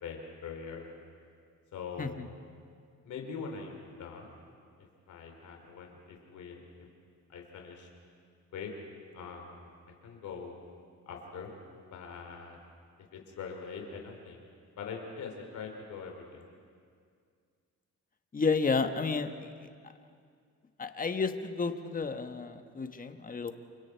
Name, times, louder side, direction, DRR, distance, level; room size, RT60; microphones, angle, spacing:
voice 1, 0.0-1.0 1.7-2.4 3.0-4.3 5.1-6.6 7.3-7.9 8.5-8.7 9.1-10.5 11.1-11.5 11.9-12.6 13.1-14.4 14.8-16.4, left 5 dB, 75° left, 2 dB, 2.9 m, -43 dB
voice 2, 18.3-19.3 20.8-23.5, left 4 dB, 30° left, 7 dB, 1.4 m, -31 dB
29.0 x 24.0 x 4.6 m, 2.2 s
cardioid pair, 90°, 30 cm